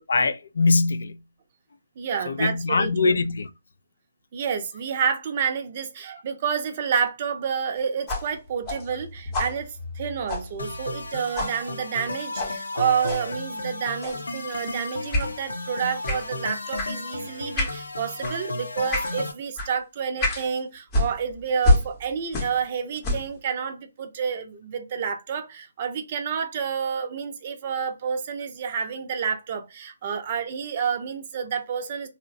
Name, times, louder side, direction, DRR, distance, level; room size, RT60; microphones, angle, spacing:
voice 1, 0.1-1.2 2.3-3.5, left 3 dB, 65° left, 0.3 m, -22 dB
voice 2, 2.0-3.2 4.3-32.1, right 7 dB, 35° right, 0.5 m, -29 dB
sound 1, 8.1-11.1 11.4-11.6 12.4-12.6 13.0-13.3 14.0-14.3 15.1-15.3 16.1-16.3 16.8-16.9 17.6-17.8 18.2-18.4 18.9-19.2 19.6-19.7 20.2-20.5 20.9-22.7 23.0-23.4, left 1 dB, 20° left, 0.8 m, -27 dB
sound 2, 10.6-19.3, left 2 dB, 80° left, 0.7 m, -34 dB
2.7 x 2.1 x 2.5 m
figure-of-eight pair, 145°, 0 cm